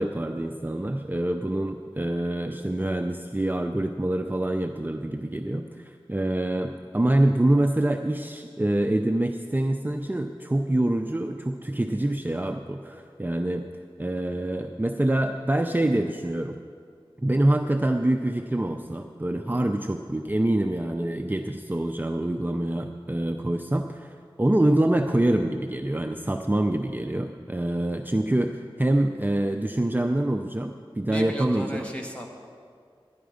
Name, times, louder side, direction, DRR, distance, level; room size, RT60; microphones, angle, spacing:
voice 1, 0.0-13.6 14.0-16.6 17.2-31.9, right 1 dB, 20° right, 5 dB, 0.5 m, -25 dB
voice 2, 31.1-32.3, equal, 15° left, 1 dB, 1.6 m, -34 dB
12.0 x 10.5 x 4.9 m, 2.2 s
wide cardioid pair, 50°, 10 cm